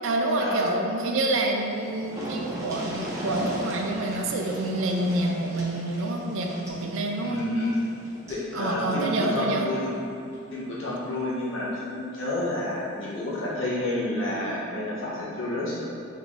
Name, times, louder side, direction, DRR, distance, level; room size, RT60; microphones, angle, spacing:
voice 1, 0.0-7.4 8.5-9.7, right 2 dB, 65° right, 2 dB, 0.4 m, -27 dB
sound 1, 1.4-1.5 1.7-8.5 9.8-9.9 10.3-10.4, equal, 15° right, 0.7 m, -38 dB
voice 2, 7.2-7.8 8.3-9.9 10.5-15.8, left 1 dB, 65° left, -7 dB, 1.0 m, -29 dB
3.7 x 3.7 x 3.2 m, 2.5 s
head